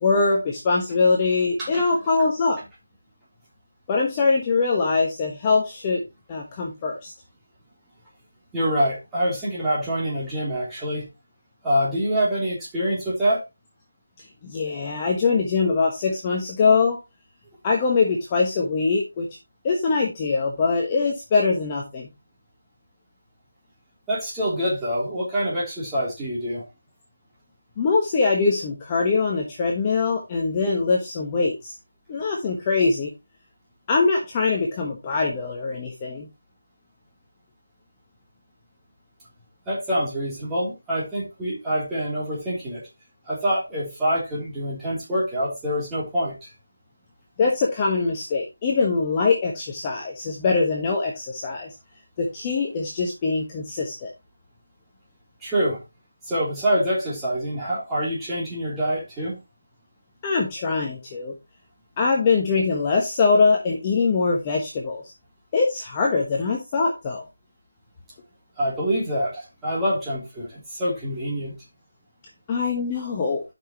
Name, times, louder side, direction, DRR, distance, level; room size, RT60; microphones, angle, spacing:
voice 1, 0.0-2.6 3.9-7.1 14.2-17.0 17.6-19.3 19.6-22.1 27.8-31.7 32.1-33.1 33.9-36.3 47.4-51.7 52.2-54.1 60.2-61.3 62.0-65.1 65.5-67.2 72.5-73.4, left 4 dB, 20° left, 0 dB, 1.2 m, -23 dB
voice 2, 8.5-11.1 11.6-13.4 24.1-26.6 39.7-42.8 43.3-46.5 55.4-55.8 56.3-59.4 68.6-71.5, equal, 5° right, -8 dB, 3.2 m, -25 dB
12.0 x 6.0 x 3.0 m, 0.24 s
figure-of-eight pair, 170°, 0 cm